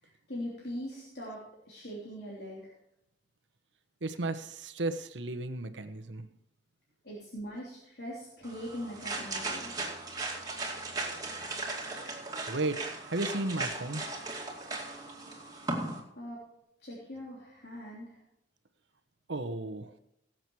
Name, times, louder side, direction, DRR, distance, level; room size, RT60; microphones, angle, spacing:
voice 1, 0.0-2.8 7.0-9.7 15.6-16.4 16.8-18.2, equal, 60° left, -4 dB, 3.1 m, -42 dB
voice 2, 4.0-6.3 12.5-14.0 19.3-19.9, right 2 dB, 75° right, 10 dB, 1.1 m, -34 dB
sound 1, 8.4-16.0, right 2 dB, 20° right, 2.5 m, -37 dB
18.0 x 7.8 x 4.7 m, 0.79 s
head